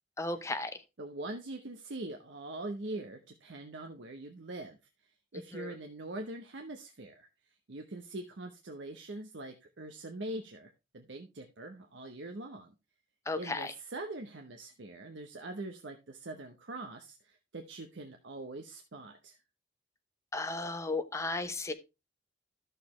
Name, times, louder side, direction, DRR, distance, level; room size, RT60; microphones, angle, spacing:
voice 1, 0.2-0.7 5.5-5.7 13.3-13.7 20.3-21.7, left 2 dB, 15° left, 9 dB, 0.7 m, -34 dB
voice 2, 1.0-4.8 5.3-12.7 13.4-19.4, right 2 dB, 70° right, 4 dB, 0.8 m, -43 dB
12.0 x 6.7 x 3.1 m, 0.27 s
head